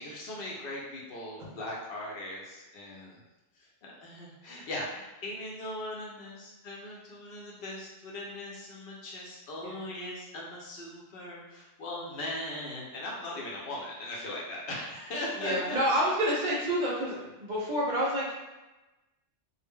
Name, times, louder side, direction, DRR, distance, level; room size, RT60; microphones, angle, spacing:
voice 1, 0.0-3.2 3.6-15.8, left 1 dB, 65° left, -3 dB, 0.8 m, -39 dB
voice 2, 15.4-18.3, equal, 55° right, -5 dB, 0.6 m, -29 dB
2.0 x 2.0 x 3.5 m, 1.1 s
omnidirectional pair, 1.1 m